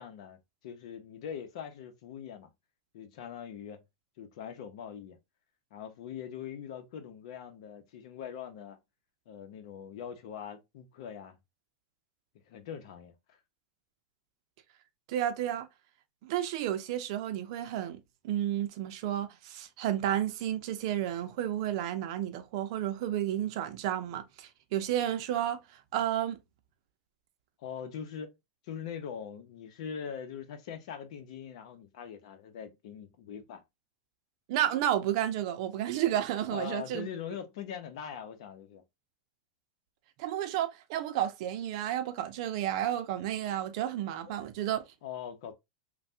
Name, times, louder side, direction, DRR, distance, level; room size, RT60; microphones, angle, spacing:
voice 1, 0.0-2.5 2.9-3.8 4.2-5.2 5.7-8.8 9.3-11.4 12.5-13.4 27.6-28.3 28.6-33.6 36.4-38.8 45.0-45.5, left 8 dB, 65° left, 0.8 m, -42 dB
voice 2, 15.1-15.7 16.2-18.0 18.2-25.6 25.9-26.4 34.5-37.1 40.2-44.8, right 11 dB, 55° right, 0.6 m, -31 dB
3.2 x 2.3 x 2.7 m
supercardioid pair, 135°, 4 cm